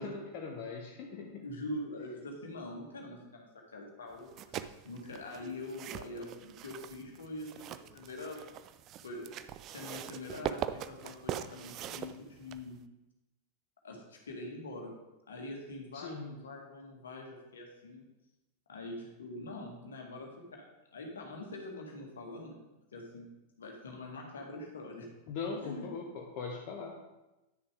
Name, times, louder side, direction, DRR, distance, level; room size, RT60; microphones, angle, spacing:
voice 1, 0.0-1.4 15.9-16.3 25.3-26.9, left 4 dB, 45° left, 0 dB, 1.0 m, -40 dB
voice 2, 1.4-8.6 9.0-9.3 9.7-12.8 13.8-14.9 15.3-18.1 18.7-22.6 22.9-23.3 23.6-25.1 25.6-25.9, left 2 dB, 70° left, 0 dB, 1.8 m, -44 dB
sound 1, 4.2-12.8, right 11 dB, 35° right, 0.4 m, -42 dB
10.5 x 6.7 x 3.6 m, 1.0 s
figure-of-eight pair, 90°, 0 cm